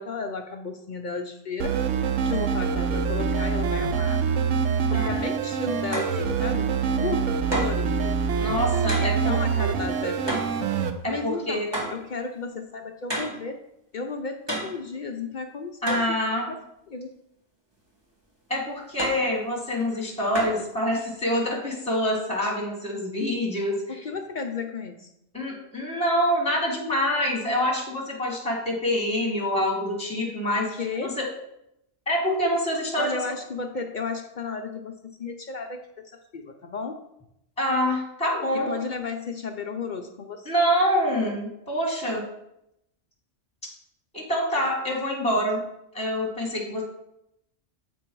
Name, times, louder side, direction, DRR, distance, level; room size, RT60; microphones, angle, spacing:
voice 1, 0.0-1.8 2.2-4.2 4.9-8.2 9.0-10.5 11.0-13.6 13.9-16.0 16.9-17.1 23.9-25.1 30.8-31.2 33.0-37.0 38.5-40.5, left 4 dB, 55° left, 5 dB, 0.5 m, -33 dB
sound 1, 1.6-10.9, right 6 dB, 80° right, 1.0 m, -25 dB
sound 2, 5.9-6.2 7.5-7.9 8.9-9.2 10.3-10.6 11.7-12.0 13.1-13.4 14.5-14.8 15.9-16.2 19.0-19.3 20.3-20.7, right 1 dB, 20° right, 1.4 m, -30 dB
voice 2, 8.4-9.3 9.6-9.7 11.0-11.7 15.8-16.5 18.5-24.0 25.3-30.7 31.0-31.3 32.1-33.1 37.6-38.7 40.4-42.2 44.1-45.6 45.9-46.8, equal, 5° left, -2 dB, 1.6 m, -26 dB
7.6 x 4.4 x 4.6 m, 0.82 s
omnidirectional pair, 1.3 m